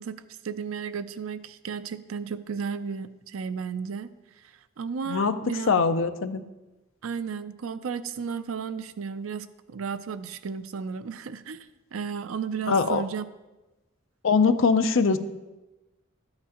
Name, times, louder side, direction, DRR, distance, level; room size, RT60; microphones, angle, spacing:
voice 1, 0.0-4.1 4.8-5.7 7.0-13.3, right 6 dB, 80° right, 13 dB, 0.5 m, -34 dB
voice 2, 5.1-6.4 12.7-13.0 14.2-15.2, left 5 dB, 65° left, 10 dB, 0.6 m, -22 dB
13.0 x 8.7 x 2.9 m, 1.1 s
head